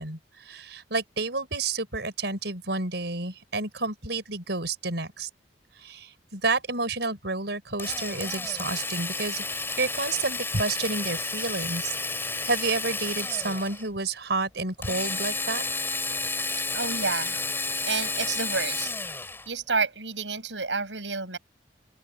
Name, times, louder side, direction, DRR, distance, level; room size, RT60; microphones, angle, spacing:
voice 1, 0.0-5.3 5.8-12.0 12.4-15.6, right 3 dB, 70° right, 5.8 m, -30 dB
Drill, 7.8-13.9 14.8-19.5, left 3 dB, 15° left, 3.3 m, -31 dB
voice 2, 16.7-17.4 17.9-18.9 19.5-21.4, right 4 dB, 85° right, 7.7 m, -29 dB
open air
head